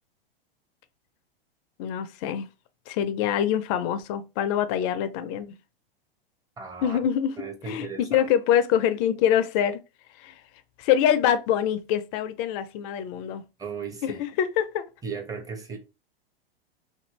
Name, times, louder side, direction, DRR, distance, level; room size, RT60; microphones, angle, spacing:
voice 1, 1.8-2.5 2.9-5.5 6.8-7.3 7.6-9.8 10.2-10.4 10.8-13.4 14.0-14.8, left 9 dB, 35° left, 0.4 m, -25 dB
voice 2, 6.6-7.0 7.4-8.3 13.6-14.2 15.0-15.8, right 5 dB, 10° right, 0.6 m, -36 dB
2.7 x 2.6 x 3.1 m
hypercardioid pair, 105°, 30 cm